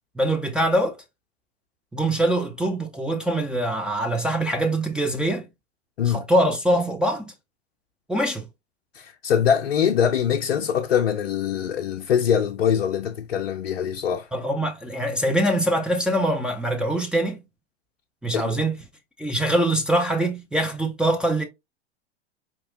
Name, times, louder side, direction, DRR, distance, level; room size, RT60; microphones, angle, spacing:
voice 1, 0.2-1.0 1.9-5.5 6.0-7.3 8.1-8.5 14.3-17.4 18.2-18.8 19.2-21.4, right 1 dB, 5° right, 0.4 m, -23 dB
voice 2, 8.9-14.3 18.3-18.7, left 8 dB, 70° left, 0.6 m, -23 dB
4.6 x 2.9 x 2.6 m
figure-of-eight pair, 90°, 33 cm